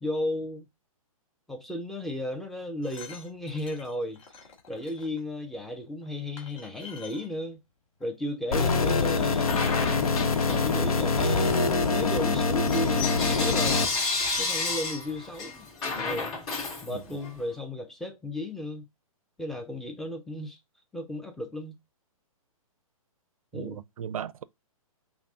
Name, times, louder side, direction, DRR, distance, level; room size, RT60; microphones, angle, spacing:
voice 1, 0.0-0.7 1.5-4.2 4.7-7.6 8.0-13.9 14.4-15.7 16.0-16.4 16.8-18.8 19.4-20.6 20.9-21.8 23.5-23.8, left 1 dB, ahead, 0.5 m, -34 dB
sound 1, 2.6-5.2 6.0-6.1 6.4-7.3 8.0-8.1 8.3-8.4, left 6 dB, 55° left, 2.0 m, -48 dB
sound 2, 8.5-13.9, left 4 dB, 80° left, 0.9 m, -25 dB
Bell / Coin (dropping), 9.4-11.0 11.4-17.4, left 3 dB, 25° left, 2.5 m, -32 dB
voice 2, 23.5-24.4, right 9 dB, 70° right, 0.4 m, -37 dB
5.7 x 2.0 x 3.6 m
hypercardioid pair, 145°, 18 cm